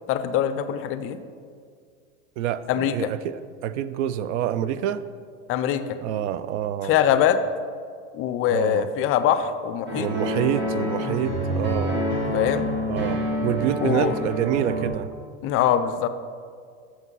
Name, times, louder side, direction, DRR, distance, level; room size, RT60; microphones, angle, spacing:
voice 1, 0.1-1.2 2.7-3.1 5.5-6.0 6.8-7.4 8.1-10.1 12.3-12.7 13.8-14.1 15.4-16.1, left 10 dB, 40° left, 11 dB, 0.4 m, -23 dB
voice 2, 2.4-5.0 6.0-7.0 8.5-8.9 9.9-12.0 12.9-15.1, right 10 dB, 75° right, 14 dB, 0.5 m, -27 dB
sound 1, 9.9-14.9, equal, 30° right, 1.9 m, -27 dB
6.5 x 5.8 x 5.4 m, 2.1 s
hypercardioid pair, 110°, 36 cm